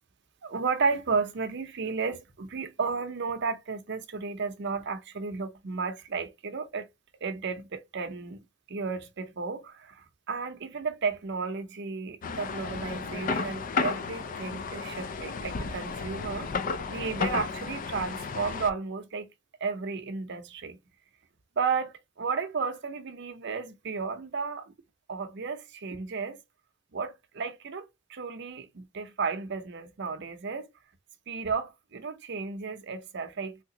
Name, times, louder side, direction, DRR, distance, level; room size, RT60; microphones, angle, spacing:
voice 1, 0.4-6.9 7.2-8.4 8.7-16.5 16.9-19.3 19.6-20.8 21.6-24.7 25.1-26.4 26.9-30.7 31.3-33.6, right 5 dB, 60° right, 0.6 m, -33 dB
sound 1, 12.2-18.7, left 4 dB, 45° left, 0.4 m, -33 dB
3.3 x 2.9 x 2.7 m
head